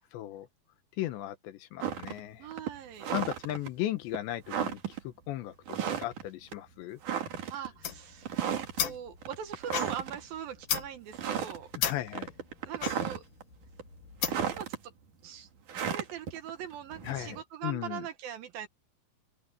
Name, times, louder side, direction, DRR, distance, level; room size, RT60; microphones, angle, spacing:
voice 1, 0.1-0.5 1.0-2.5 3.1-5.5 6.0-7.0 11.8-12.3 17.0-18.1, left 14 dB, 75° left, 3.3 m, -36 dB
sound 1, 1.8-2.2 2.5-3.7 4.1-4.2 4.5-5.0 5.7-6.3 6.5-6.6 7.0-7.7 8.2-8.8 9.2-10.2 10.6-10.8 11.1-11.8 12.1-13.4 13.8-14.8 15.7-17.4, right 8 dB, 50° right, 3.2 m, -34 dB
voice 2, 2.4-3.1 7.5-11.7 12.7-13.2 14.5-14.9 15.2-15.5 15.9-18.7, right 9 dB, 70° right, 2.5 m, -41 dB
sound 2, 7.7-14.6, left 9 dB, 55° left, 2.7 m, -36 dB
open air
omnidirectional pair, 5.3 m